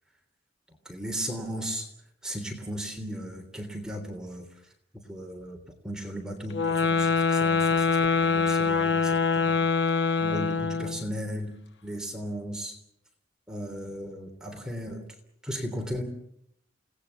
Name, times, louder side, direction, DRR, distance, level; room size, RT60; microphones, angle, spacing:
voice 1, 0.8-1.9 2.2-4.5 5.1-5.6 5.8-9.6 10.2-11.5 11.8-12.8 13.5-15.0 15.4-16.0, equal, 5° right, 2 dB, 3.3 m, -36 dB
sound 1, 6.5-11.1, left 4 dB, 70° left, 1.2 m, -24 dB
29.5 x 18.5 x 7.2 m, 0.75 s
head